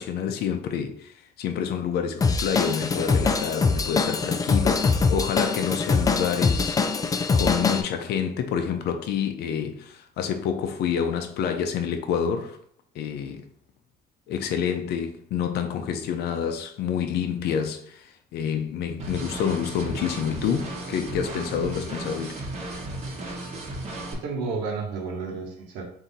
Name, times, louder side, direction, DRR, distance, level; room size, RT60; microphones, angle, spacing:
voice 1, 0.0-6.8 7.3-12.6 12.9-13.5 14.3-22.4, left 7 dB, 70° left, 0.6 m, -28 dB
Drum kit / Drum, 2.2-7.8, left 4 dB, 20° left, 0.4 m, -23 dB
sound 1, 19.0-24.1, right 2 dB, 40° right, 1.1 m, -35 dB
voice 2, 24.1-25.8, right 4 dB, 90° right, 1.1 m, -31 dB
3.8 x 2.7 x 4.0 m
cardioid pair, 110°, 17 cm